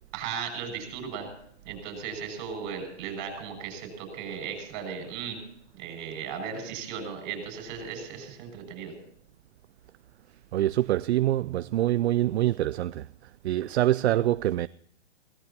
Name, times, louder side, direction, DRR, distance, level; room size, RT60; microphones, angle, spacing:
voice 1, 0.1-1.3 1.6-5.4 5.7-8.9, right 6 dB, 35° right, 6.6 m, -36 dB
voice 2, 10.5-14.7, right 13 dB, 65° right, 0.5 m, -25 dB
22.5 x 17.5 x 2.9 m
hypercardioid pair, 155°, 35 cm